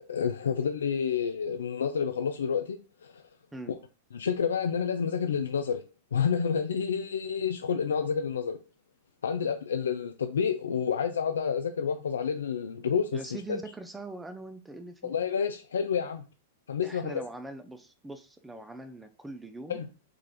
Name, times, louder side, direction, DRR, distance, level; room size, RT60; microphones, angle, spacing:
voice 1, 0.1-3.1 3.7-3.8 4.1-5.8 6.1-8.6 9.2-13.2 13.5-13.6 15.0-16.2 16.7-17.2 19.7-19.9, left 7 dB, 80° left, 0.3 m, -29 dB
voice 2, 13.1-15.1 16.8-19.8, right 2 dB, 10° right, 0.4 m, -42 dB
4.6 x 2.5 x 3.0 m
hypercardioid pair, 105°, 0 cm